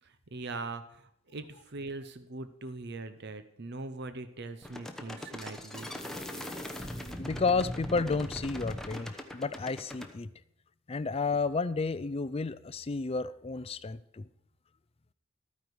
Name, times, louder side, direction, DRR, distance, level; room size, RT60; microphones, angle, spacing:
voice 1, 0.0-6.0, right 3 dB, 50° right, 10 dB, 0.7 m, -41 dB
sound 1, 4.6-10.1, left 1 dB, ahead, 0.9 m, -40 dB
voice 2, 7.2-10.3 10.9-14.3, left 4 dB, 30° left, 15 dB, 0.4 m, -31 dB
13.0 x 9.4 x 4.7 m, 0.78 s
head